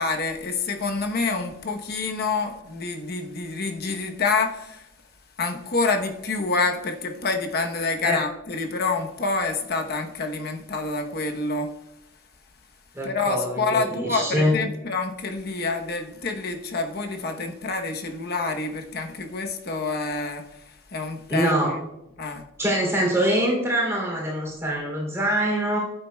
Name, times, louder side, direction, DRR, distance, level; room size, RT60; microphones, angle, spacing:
voice 1, 0.0-4.9 5.4-11.7 13.0-20.6 20.9-21.8 22.2-22.4, left 3 dB, 50° left, 1.0 m, -27 dB
voice 2, 12.9-14.5 21.3-21.8 22.6-25.8, equal, 15° right, 3.0 m, -24 dB
15.0 x 8.9 x 2.3 m
head